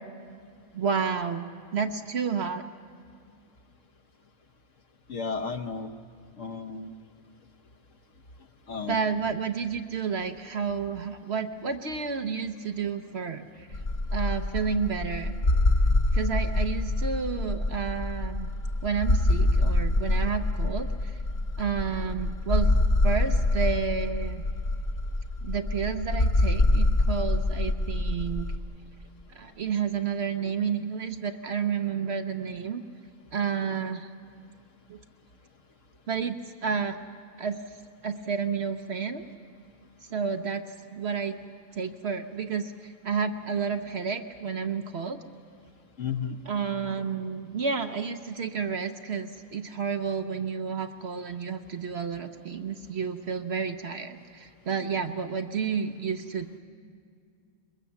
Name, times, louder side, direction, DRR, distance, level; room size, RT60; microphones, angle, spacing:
voice 1, 0.7-2.6 8.9-13.8 14.1-15.3 16.1-18.5 18.8-21.2 21.6-22.7 23.0-24.4 25.4-28.5 29.3-32.8 33.3-34.1 34.9-35.0 36.1-37.0 37.4-37.6 38.0-39.3 40.1-40.6 40.9-41.4 41.7-45.2 46.5-56.5, right 6 dB, 55° right, 7 dB, 0.9 m, -30 dB
voice 2, 5.1-5.9 6.4-6.9 8.7-9.0 46.0-46.4, left 5 dB, 60° left, 6 dB, 1.4 m, -33 dB
sound 1, 13.7-28.6, left 2 dB, 40° left, 1.0 m, -25 dB
22.0 x 22.0 x 7.1 m, 2.2 s
omnidirectional pair, 1.5 m